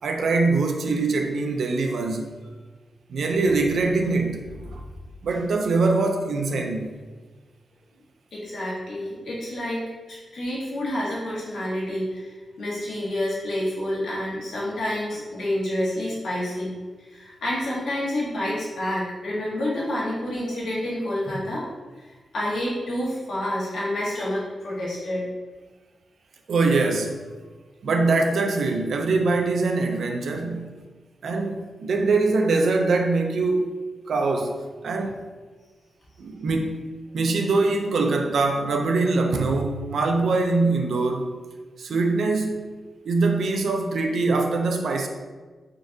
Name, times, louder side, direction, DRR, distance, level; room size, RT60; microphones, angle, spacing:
voice 1, 0.0-2.3 3.1-4.8 5.2-6.9 26.5-27.2 27.8-30.7 31.2-33.7 34.1-35.2 36.2-36.8 37.1-41.3 41.8-42.6 43.1-45.1, right 3 dB, 75° right, 3 dB, 0.5 m, -23 dB
voice 2, 8.3-21.7 22.3-25.3, left 1 dB, 80° left, -7 dB, 1.4 m, -28 dB
3.8 x 3.5 x 2.7 m, 1.3 s
wide cardioid pair, 125°, 0 cm